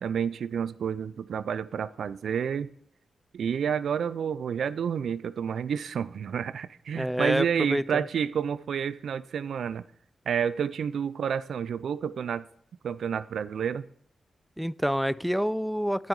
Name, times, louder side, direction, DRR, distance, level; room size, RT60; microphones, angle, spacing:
voice 1, 0.0-2.7 3.3-9.9 10.3-12.5 12.8-13.9, right 7 dB, 80° right, 17 dB, 0.4 m, -30 dB
voice 2, 6.9-8.0 14.6-16.1, equal, ahead, 19 dB, 0.3 m, -27 dB
15.5 x 5.4 x 4.7 m, 0.66 s
cardioid pair, 60°, 0 cm